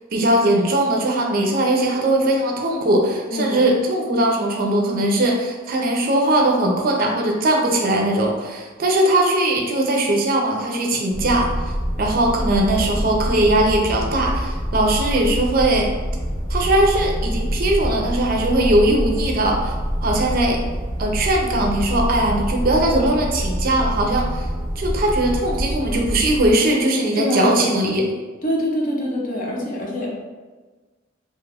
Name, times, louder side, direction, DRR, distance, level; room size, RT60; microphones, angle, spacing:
voice 1, 0.1-11.7 12.0-15.9 16.5-19.7 20.0-20.6 21.0-24.5 24.8-28.1, right 1 dB, 50° right, 0 dB, 0.4 m, -20 dB
sound 1, 11.1-26.5, equal, 10° left, 0.7 m, -26 dB
voice 2, 27.1-27.6 28.4-30.1, left 1 dB, 45° left, -3 dB, 0.6 m, -24 dB
2.7 x 2.2 x 3.3 m, 1.3 s
head